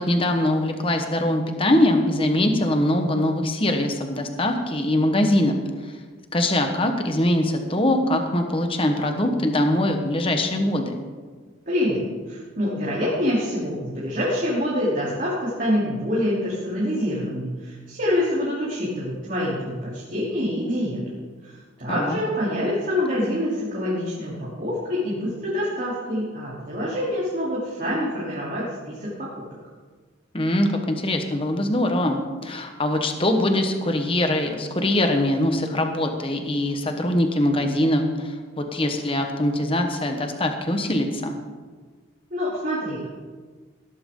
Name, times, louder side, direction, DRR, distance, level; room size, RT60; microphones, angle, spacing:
voice 1, 0.0-5.6 6.3-11.0 21.9-22.2 30.3-41.4, left 1 dB, 25° left, 5 dB, 1.2 m, -22 dB
voice 2, 11.7-21.0 21.4-29.3 42.3-43.1, left 1 dB, 40° right, -8 dB, 3.3 m, -26 dB
17.0 x 12.5 x 3.8 m, 1.5 s
head